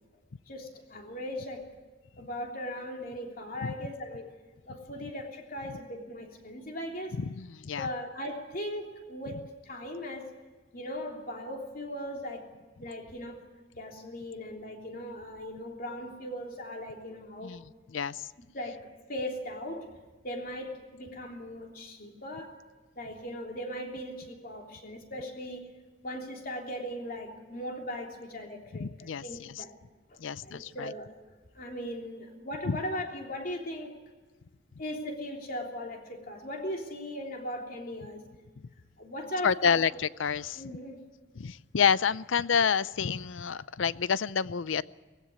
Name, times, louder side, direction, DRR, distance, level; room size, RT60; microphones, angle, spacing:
voice 1, 0.5-1.7 2.2-4.3 4.7-7.2 7.8-10.3 10.7-12.5 12.8-13.4 13.8-17.6 18.5-18.8 19.1-20.0 20.2-22.5 22.9-25.7 26.0-29.7 30.1-31.1 31.5-34.0 34.8-38.3 39.0-39.8 40.6-41.0, equal, 50° left, 1 dB, 3.2 m, -38 dB
voice 2, 7.2-7.9 17.4-17.6 17.9-18.2 28.8-29.6 30.2-30.9 32.7-32.8 39.4-40.6 41.4-44.8, left 6 dB, 85° left, 18 dB, 0.6 m, -28 dB
19.0 x 16.0 x 9.5 m, 1.3 s
head